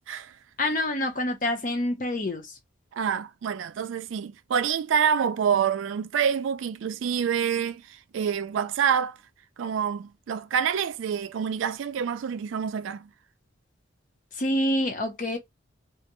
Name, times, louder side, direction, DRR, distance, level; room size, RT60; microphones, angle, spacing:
voice 1, 0.6-2.4 14.4-15.4, left 1 dB, 45° left, 0.7 m, -26 dB
voice 2, 2.9-7.8 8.1-9.2 9.6-13.1, right 7 dB, 80° right, 0.3 m, -27 dB
2.4 x 2.1 x 2.9 m
head